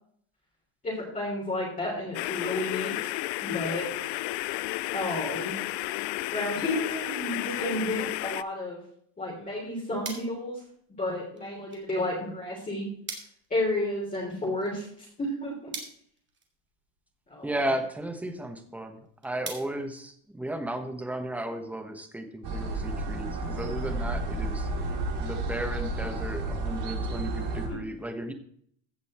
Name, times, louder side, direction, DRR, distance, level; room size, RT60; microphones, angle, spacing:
voice 1, 0.8-3.9 4.9-5.5 6.3-8.8 9.2-10.6 10.9-12.9 13.5-15.7 17.3-17.6 27.7-27.8, left 1 dB, 15° left, -5 dB, 3.2 m, -32 dB
sound 1, 2.1-8.4, left 19 dB, 75° left, 0.6 m, -32 dB
sound 2, 9.3-20.8, right 4 dB, 25° right, 2.2 m, -47 dB
voice 2, 17.4-19.0 19.2-24.7 25.2-28.3, right 1 dB, 5° right, 6 dB, 1.0 m, -34 dB
sound 3, 22.4-27.7, right 2 dB, 55° right, 3.1 m, -31 dB
15.5 x 5.4 x 4.3 m, 0.63 s
cardioid pair, 155°, 49 cm